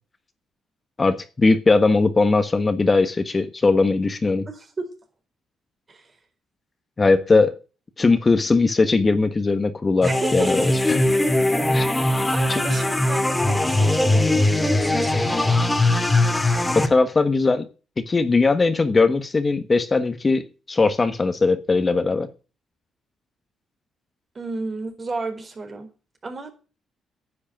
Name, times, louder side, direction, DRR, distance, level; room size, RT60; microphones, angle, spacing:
voice 1, 1.0-4.5 7.0-7.5 8.0-11.1 11.7-12.1 12.5-12.6 16.7-17.7 18.0-22.3, left 3 dB, 30° left, 10 dB, 1.4 m, -20 dB
voice 2, 4.5-4.9 5.9-6.1 10.0-10.7 11.9-15.7 24.3-25.9 26.2-26.5, right 3 dB, 35° right, 5 dB, 4.4 m, -33 dB
sound 1, 10.0-16.9, left 1 dB, 10° left, 2.2 m, -20 dB
10.5 x 8.6 x 8.8 m, 0.35 s
cardioid pair, 90°, 0 cm